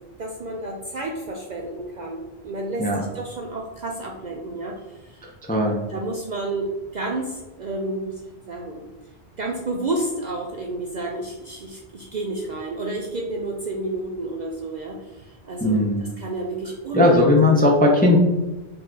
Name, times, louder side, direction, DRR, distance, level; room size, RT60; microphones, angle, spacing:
voice 1, 0.2-2.9 3.1-5.3 5.9-8.2 8.5-8.8 9.4-17.2 17.6-17.7, right 2 dB, 55° right, 0 dB, 0.5 m, -30 dB
voice 2, 15.6-16.0 16.9-18.2, left 2 dB, 15° left, -1 dB, 0.4 m, -17 dB
4.6 x 2.4 x 3.8 m, 1.1 s
omnidirectional pair, 1.1 m